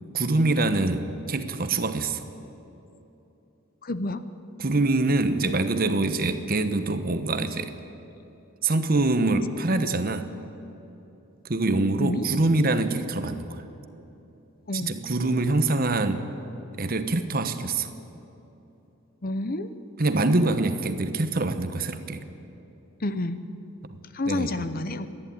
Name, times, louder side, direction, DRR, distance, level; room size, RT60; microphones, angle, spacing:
voice 1, 0.1-2.2 4.6-7.7 8.6-10.3 11.4-13.6 14.7-16.3 16.7-17.9 20.0-22.2 23.9-24.0 24.3-24.7, right 2 dB, 45° right, 9 dB, 1.1 m, -25 dB
voice 2, 3.8-4.2 12.0-12.3 14.7-14.9 19.2-19.7 23.0-23.4 24.1-25.1, left 2 dB, 45° left, 12 dB, 0.8 m, -29 dB
26.5 x 11.0 x 9.2 m, 3.0 s
head